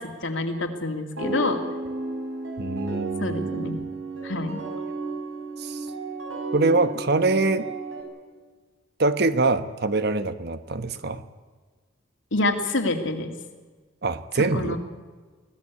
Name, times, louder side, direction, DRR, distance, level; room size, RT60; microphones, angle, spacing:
voice 1, 0.0-1.6 3.2-3.8 4.2-4.6 12.3-13.4 14.5-14.8, left 2 dB, 70° left, 4 dB, 2.6 m, -27 dB
sound 1, 1.2-8.0, right 3 dB, 85° right, 6.1 m, -33 dB
voice 2, 2.6-3.8 5.6-5.9 6.5-7.7 9.0-11.2 14.0-14.8, right 3 dB, 55° right, 11 dB, 1.1 m, -24 dB
24.0 x 16.5 x 8.4 m, 1.4 s
head